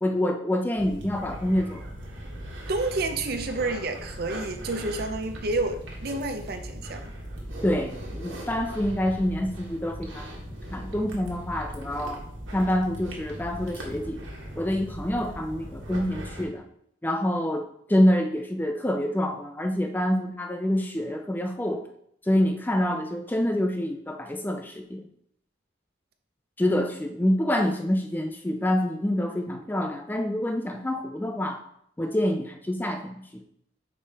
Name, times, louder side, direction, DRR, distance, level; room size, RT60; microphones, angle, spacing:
voice 1, 0.0-1.8 7.6-12.2 12.5-14.2 14.6-16.6 17.0-21.9 22.2-25.1 26.6-31.6 32.0-33.4, left 1 dB, 10° left, 5 dB, 0.3 m, -26 dB
sound 1, 0.8-16.5, equal, 75° right, 1.5 m, -39 dB
voice 2, 2.7-7.0 27.6-27.7, right 2 dB, 50° right, 7 dB, 0.6 m, -29 dB
5.3 x 5.0 x 4.2 m, 0.71 s
head